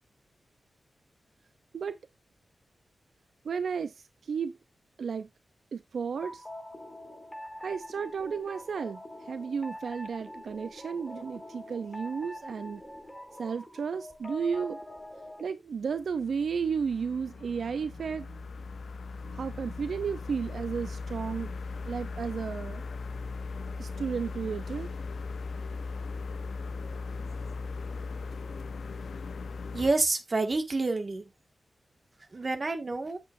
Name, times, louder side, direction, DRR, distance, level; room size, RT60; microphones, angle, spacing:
voice 1, 3.4-4.5 5.0-5.3 5.7-6.4 7.6-12.8 13.4-14.8 15.4-18.5 19.2-21.5 21.9-22.8 23.8-24.9, right 6 dB, 80° right, 0.6 m, -33 dB
sound 1, 6.2-15.4, left 1 dB, 15° left, 3.6 m, -44 dB
sound 2, 15.9-29.9, left 4 dB, 75° left, 0.9 m, -38 dB
voice 2, 29.7-31.2 32.3-33.2, right 3 dB, 40° right, 1.8 m, -28 dB
9.6 x 8.6 x 2.6 m
wide cardioid pair, 95°, 0 cm